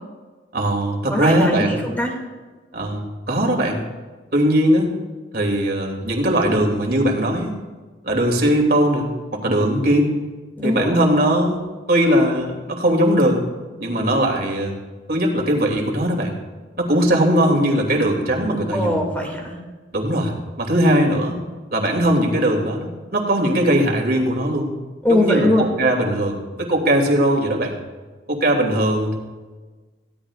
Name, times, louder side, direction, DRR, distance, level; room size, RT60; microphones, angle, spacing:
voice 1, 0.5-1.8 2.7-3.8 4.3-4.9 5.3-7.5 8.0-10.2 10.6-11.6 11.9-13.4 13.8-14.7 15.1-16.4 16.8-18.9 19.9-21.4 21.7-24.7 25.1-27.8 28.3-29.2, right 1 dB, 50° right, 1 dB, 2.8 m, -19 dB
voice 2, 1.1-2.1 10.6-11.0 18.7-19.6 25.0-25.7, left 1 dB, 10° left, 0 dB, 2.4 m, -21 dB
22.5 x 16.5 x 2.5 m, 1.3 s
head